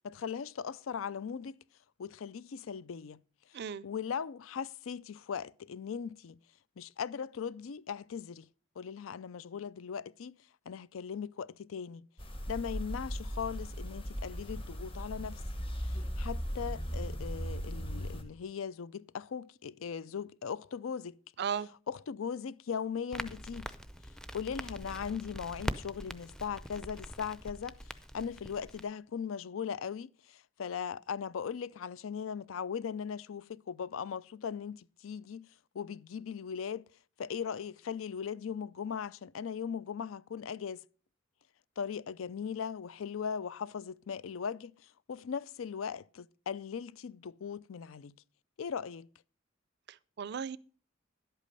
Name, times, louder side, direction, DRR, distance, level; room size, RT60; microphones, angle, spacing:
voice 1, 0.0-1.6 2.0-3.2 3.5-6.4 6.8-8.5 8.8-10.4 10.7-12.1 12.5-15.4 15.8-21.2 21.9-23.8 24.3-35.5 35.7-36.8 37.2-40.8 41.8-48.1 48.6-49.1, left 7 dB, 80° left, 0.4 m, -39 dB
voice 2, 3.5-3.9 21.4-21.7 49.9-50.6, right 7 dB, 55° right, 0.4 m, -36 dB
sound 1, 12.2-18.2, equal, 25° left, 1.5 m, -38 dB
Crackle, 23.1-28.8, equal, 5° left, 0.5 m, -43 dB
11.5 x 8.3 x 5.3 m
head